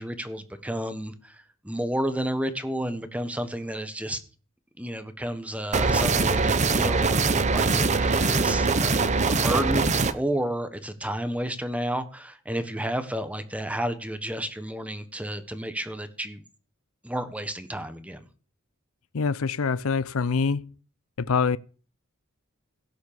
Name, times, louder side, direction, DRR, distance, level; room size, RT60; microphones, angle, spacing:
voice 1, 0.0-4.2 4.8-8.9 9.3-16.4 17.0-18.2, right 1 dB, 5° right, 1.3 m, -31 dB
sound 1, 5.7-10.1, right 4 dB, 35° right, 0.9 m, -22 dB
voice 2, 19.1-20.7 21.2-21.6, left 5 dB, 80° left, 0.6 m, -25 dB
17.0 x 6.4 x 6.8 m
head